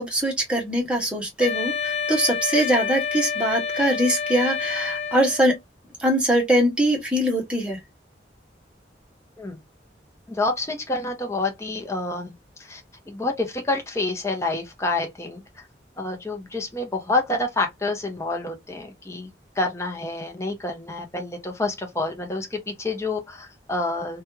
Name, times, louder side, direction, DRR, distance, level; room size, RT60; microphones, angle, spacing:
voice 1, 0.0-5.6 6.0-7.8, right 1 dB, 5° right, 1.0 m, -22 dB
Wind instrument woodwind instrument, 1.4-5.6, left 6 dB, 35° left, 1.8 m, -28 dB
voice 2, 10.3-12.3 12.6-15.7 16.0-19.3 19.6-24.2, left 2 dB, 15° left, 0.7 m, -28 dB
3.1 x 2.3 x 2.8 m
head